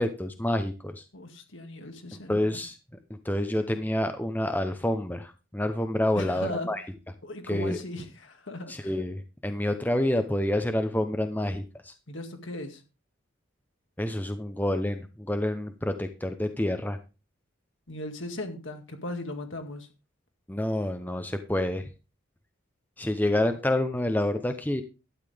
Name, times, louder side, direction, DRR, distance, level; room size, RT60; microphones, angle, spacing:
voice 1, 0.0-1.0 2.3-2.8 3.1-6.8 7.5-7.8 8.7-11.9 14.0-17.0 20.5-21.9 23.0-24.8, left 1 dB, 10° left, 8 dB, 0.7 m, -28 dB
voice 2, 1.1-2.6 6.2-6.7 7.2-8.9 12.1-12.8 17.9-19.9, left 1 dB, 70° left, 5 dB, 2.0 m, -37 dB
12.0 x 9.6 x 3.5 m, 0.30 s
head